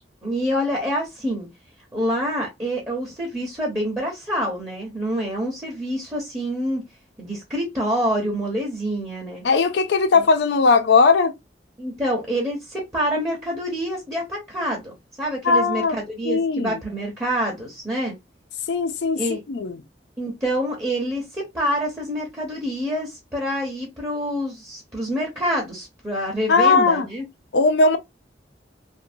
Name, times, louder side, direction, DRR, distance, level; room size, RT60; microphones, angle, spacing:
voice 1, 0.2-1.5 1.9-6.8 7.2-9.4 10.1-10.2 11.8-18.1 19.1-19.4 20.2-27.2, equal, 15° right, 0.9 m, -26 dB
voice 2, 9.4-11.3 15.4-16.0 16.2-16.8 18.7-19.2 19.5-19.8 26.5-27.1 27.5-28.0, left 4 dB, 70° left, 0.4 m, -18 dB
2.6 x 2.6 x 2.6 m
head